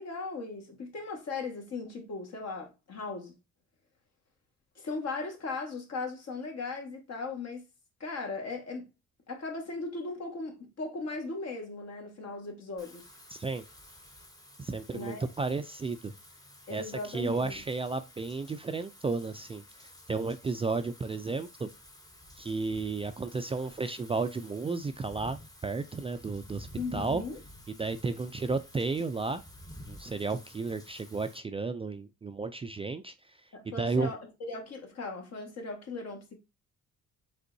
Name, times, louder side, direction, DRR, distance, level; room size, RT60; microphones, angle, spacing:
voice 1, 0.0-3.3 4.7-7.6 8.0-8.8 9.3-13.1 14.9-15.3 16.7-17.6 26.8-27.4 33.5-36.4, left 3 dB, 55° left, 1.6 m, -38 dB
Wind / Rain, 12.8-31.4, equal, 10° left, 0.9 m, -52 dB
voice 2, 13.3-13.6 14.6-16.1 16.7-21.7 22.4-27.2 27.8-29.4 29.9-33.1 33.8-34.1, right 3 dB, 20° right, 0.3 m, -33 dB
5.2 x 3.6 x 2.6 m
cardioid pair, 90°, 30 cm